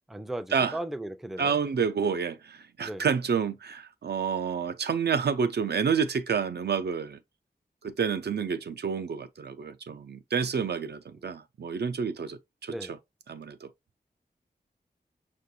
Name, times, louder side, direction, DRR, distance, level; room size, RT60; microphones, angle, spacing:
voice 1, 0.1-1.6 2.8-3.1 11.1-11.3 12.7-12.9, right 1 dB, ahead, 0.3 m, -37 dB
voice 2, 1.4-7.2 7.8-12.7 13.3-13.7, right 6 dB, 80° right, 0.5 m, -29 dB
5.9 x 2.5 x 2.7 m
wide cardioid pair, 100°, 17 cm